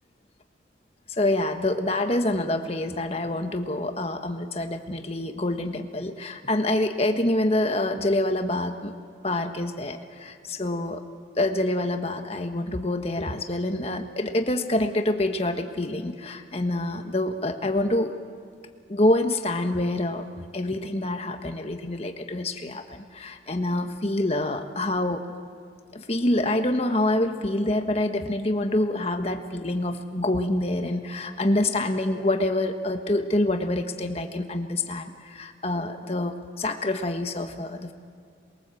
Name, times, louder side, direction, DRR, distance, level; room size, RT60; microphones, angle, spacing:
voice 1, 1.1-8.9 9.2-11.0 11.4-18.1 18.9-20.3 20.5-25.2 25.9-37.9, left 1 dB, 35° left, 6 dB, 1.4 m, -26 dB
27.5 x 22.0 x 7.8 m, 2.2 s
head